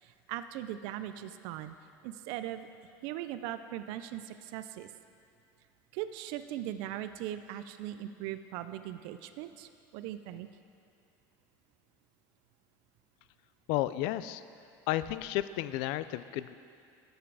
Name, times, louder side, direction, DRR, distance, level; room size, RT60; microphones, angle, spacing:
voice 1, 0.0-1.7 2.0-2.7 3.0-4.9 5.9-10.5, right 12 dB, 65° right, 11 dB, 0.4 m, -39 dB
voice 2, 13.7-14.4 14.9-16.5, left 14 dB, 65° left, 14 dB, 0.4 m, -32 dB
12.0 x 8.1 x 4.8 m, 2.4 s
cardioid pair, 170°, 8 cm